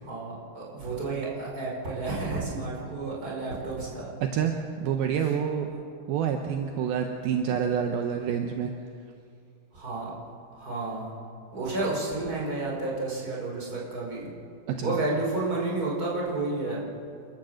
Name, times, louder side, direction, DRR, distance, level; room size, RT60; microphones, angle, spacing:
voice 1, 0.0-4.1 5.2-5.3 9.7-10.1 10.5-11.1 11.5-14.3 14.8-17.0, right 2 dB, 20° right, -4 dB, 5.4 m, -31 dB
voice 2, 4.2-5.7 6.1-8.7 14.7-15.0, right 8 dB, 75° right, 4 dB, 2.7 m, -27 dB
28.0 x 13.5 x 7.8 m, 2.3 s
omnidirectional pair, 4.5 m